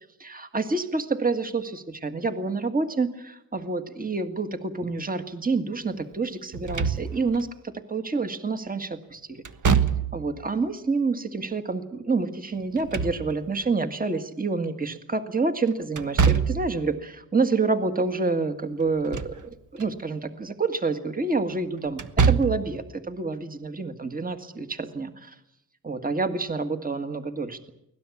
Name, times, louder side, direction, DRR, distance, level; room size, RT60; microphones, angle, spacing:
voice 1, 0.2-7.5 7.9-9.4 10.1-22.0 22.3-25.4 25.8-27.7, right 3 dB, 25° right, 8 dB, 1.8 m, -28 dB
Slam / Thump thud, 6.5-7.4 9.4-10.3 12.6-13.6 16.0-16.8 18.8-19.4 19.8-19.9 21.9-22.7, right 6 dB, 55° right, 1.4 m, -24 dB
24.0 x 18.0 x 8.5 m, 0.84 s
wide cardioid pair, 100°, 36 cm